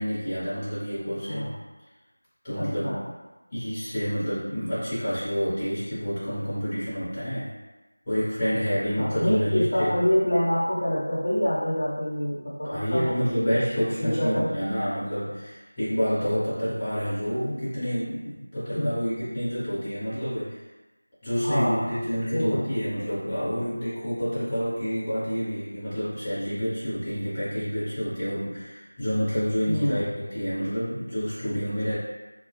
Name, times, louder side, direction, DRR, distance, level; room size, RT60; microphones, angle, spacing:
voice 1, 0.0-1.6 2.4-3.1 3.5-7.5 8.1-10.0 12.6-20.6 21.2-32.0, equal, 15° left, -14 dB, 0.8 m, -28 dB
voice 2, 2.6-3.0 9.0-13.1 14.0-14.6 18.7-19.0 21.4-21.9 22.3-22.7 29.6-30.1, equal, 50° left, -7 dB, 0.7 m, -26 dB
2.3 x 2.1 x 2.9 m, 1.1 s
figure-of-eight pair, 175°, 0 cm